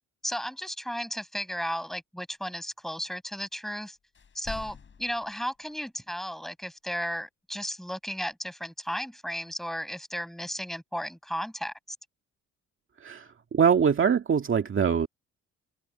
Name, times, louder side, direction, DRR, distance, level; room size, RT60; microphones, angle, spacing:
voice 1, 0.2-4.0 4.4-11.7, equal, ahead, 7.1 m, -34 dB
sound 1, 4.1-5.8 8.3-8.4, left 6 dB, 40° left, 3.9 m, -44 dB
voice 2, 13.0-15.1, right 7 dB, 40° right, 2.0 m, -23 dB
open air
cardioid pair, 90°, 30 cm